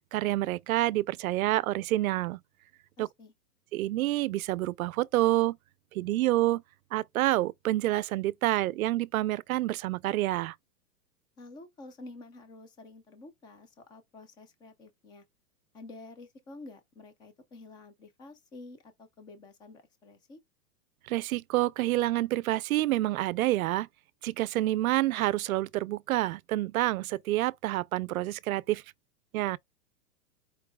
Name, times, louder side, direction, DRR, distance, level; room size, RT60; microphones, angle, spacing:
voice 1, 0.1-2.4 3.0-3.1 3.7-5.6 5.9-6.6 6.9-10.5 21.1-23.9 24.2-28.8 29.3-29.6, right 16 dB, 60° right, 0.5 m, -28 dB
voice 2, 3.0-3.3 11.4-15.2 15.7-20.4, left 2 dB, 10° left, 0.4 m, -49 dB
4.7 x 4.6 x 2.2 m
hypercardioid pair, 125°, 48 cm